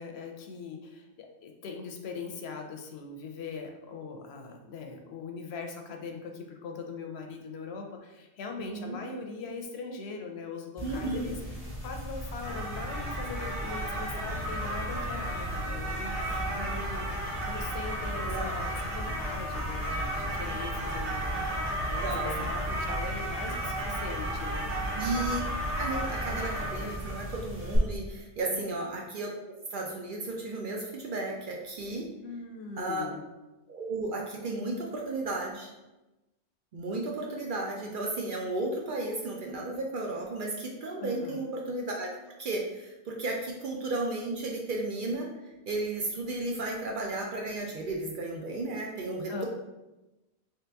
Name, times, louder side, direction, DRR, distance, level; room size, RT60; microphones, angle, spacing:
voice 1, 0.0-11.4 11.8-24.7 28.5-28.8 32.2-33.2 41.0-41.4 49.3-49.5, left 4 dB, 70° left, 3 dB, 0.8 m, -41 dB
voice 2, 8.6-9.0 10.8-11.3 18.2-18.6 22.0-22.5 25.0-25.4 25.7-29.3 29.7-32.1 32.8-33.1 33.7-35.7 36.7-42.1 42.4-49.4, right 2 dB, 60° right, -1 dB, 0.6 m, -34 dB
sound 1, 10.8-27.8, right 1 dB, 10° right, 1.0 m, -33 dB
3.2 x 2.8 x 3.3 m, 1.0 s
omnidirectional pair, 1.2 m